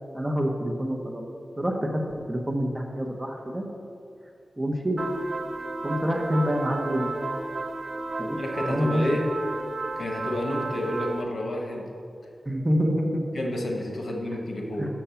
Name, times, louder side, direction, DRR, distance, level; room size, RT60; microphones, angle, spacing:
voice 1, 0.1-1.2 1.6-2.0 2.3-3.7 4.6-5.0 5.8-7.1 8.2-8.4 8.7-9.3 12.5-13.3 14.8-14.9, equal, 15° right, 1 dB, 1.0 m, -27 dB
sound 1, 5.0-11.2, right 3 dB, 55° right, 0.6 m, -33 dB
voice 2, 8.4-9.3 10.0-11.9 13.3-14.9, left 1 dB, 70° left, 1 dB, 1.3 m, -30 dB
7.1 x 6.3 x 5.7 m, 2.5 s
wide cardioid pair, 70°, 0 cm